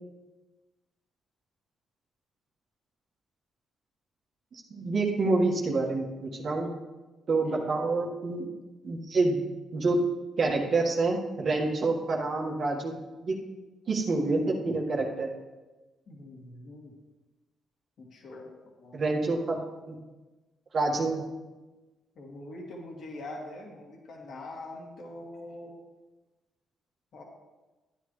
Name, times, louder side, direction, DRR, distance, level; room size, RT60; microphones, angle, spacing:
voice 1, 4.5-6.7 7.3-8.5 8.8-9.4 9.7-10.0 10.4-13.4 13.9-15.3 18.9-19.9 20.7-21.2, right 3 dB, 50° right, -1 dB, 1.7 m, -27 dB
voice 2, 16.1-16.9 18.0-18.5 18.8-19.0 22.2-25.7 27.1-27.2, left 2 dB, 60° left, -1 dB, 2.4 m, -43 dB
12.5 x 9.5 x 3.3 m, 1.2 s
cardioid pair, 90°, 0 cm